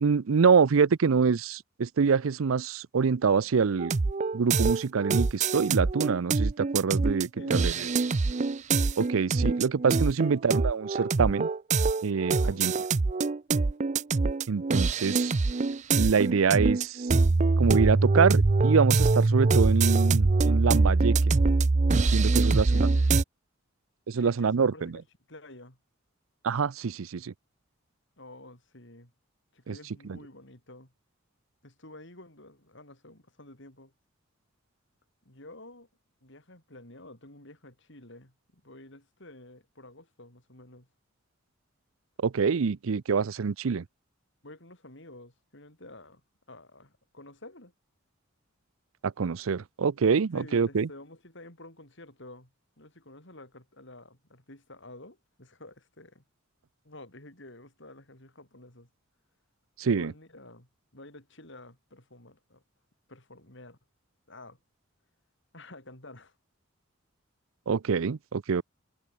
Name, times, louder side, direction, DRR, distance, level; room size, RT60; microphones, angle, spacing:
voice 1, 0.0-3.9 4.3-7.7 9.0-11.5 12.0-12.7 14.5-15.3 16.0-17.1 17.6-21.4 21.9-22.9 24.1-25.0 26.4-27.3 29.7-29.8 30.1-30.2 42.2-43.8 49.0-50.9 59.8-60.1 67.7-68.6, right 5 dB, 90° right, 0.5 m, -25 dB
sound 1, 3.8-23.2, right 3 dB, 35° right, 0.5 m, -24 dB
voice 2, 7.4-8.0 10.2-10.3 12.4-12.8 22.4-23.2 24.2-25.0 25.3-25.8 28.2-29.1 29.5-30.9 31.6-33.9 35.2-35.9 36.2-40.9 44.4-46.2 46.5-47.7 50.3-52.5 52.8-56.2 56.8-58.9 59.9-62.6 63.1-63.8 64.3-64.6 65.5-66.4, left 2 dB, 60° left, 7.5 m, -50 dB
head